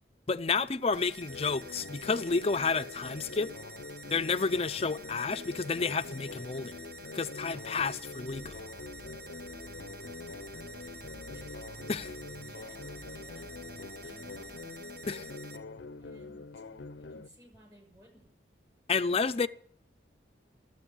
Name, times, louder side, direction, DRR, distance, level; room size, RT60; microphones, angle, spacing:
voice 1, 0.3-3.5 4.1-6.8 7.1-8.6 11.9-12.1 15.1-15.2 18.9-19.5, left 4 dB, 30° left, 0.5 m, -30 dB
sound 1, 0.9-15.6, right 2 dB, 55° right, 1.4 m, -49 dB
sound 2, 1.3-17.3, left 3 dB, 80° left, 0.6 m, -45 dB
sound 3, 8.2-14.6, equal, 75° right, 3.2 m, -52 dB
voice 2, 11.3-11.6 12.3-15.0 16.0-16.5 17.0-18.3 19.1-19.5, right 1 dB, 20° right, 6.4 m, -60 dB
13.0 x 8.0 x 10.0 m
head